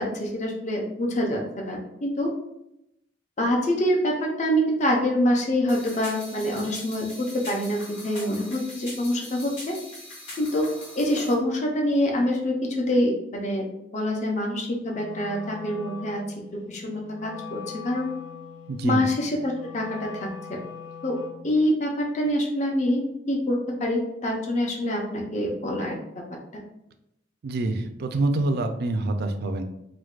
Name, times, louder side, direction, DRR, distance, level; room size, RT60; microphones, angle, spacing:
voice 1, 0.0-2.3 3.4-7.1 7.5-9.7 10.4-10.7 11.0-13.6 13.9-16.2 16.7-18.1 18.8-20.6 21.0-21.2 21.4-26.2 26.5-26.6, left 1 dB, 40° left, 0 dB, 0.5 m, -26 dB
sound 1, 5.7-11.3, left 1 dB, 65° left, 1.3 m, -41 dB
Wind instrument woodwind instrument, 14.8-21.5, left 6 dB, 90° left, 0.7 m, -42 dB
voice 2, 18.7-19.0 27.4-29.6, right 2 dB, 55° right, 6 dB, 0.3 m, -26 dB
4.5 x 2.1 x 2.4 m, 0.83 s
head